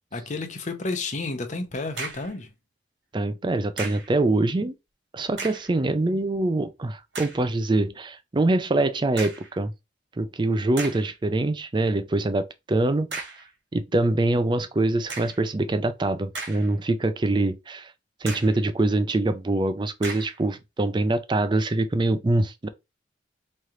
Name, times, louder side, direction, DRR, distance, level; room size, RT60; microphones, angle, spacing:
voice 1, 0.1-2.5, left 3 dB, 40° left, 0.8 m, -31 dB
sound 1, 1.7-2.4 3.8-4.2 5.3-5.8 6.4-6.5 7.1-7.5 9.2-9.6 10.2-10.3 10.8-11.1 13.1-13.5 15.1-15.5 16.1-16.9 17.3-17.4 18.3-18.6 20.0-20.4, right 3 dB, 65° right, 1.7 m, -36 dB
voice 2, 3.1-4.7 5.1-9.7 10.2-13.2 13.7-17.9 18.2-22.7, right 2 dB, 25° right, 0.4 m, -24 dB
3.2 x 3.0 x 3.7 m
head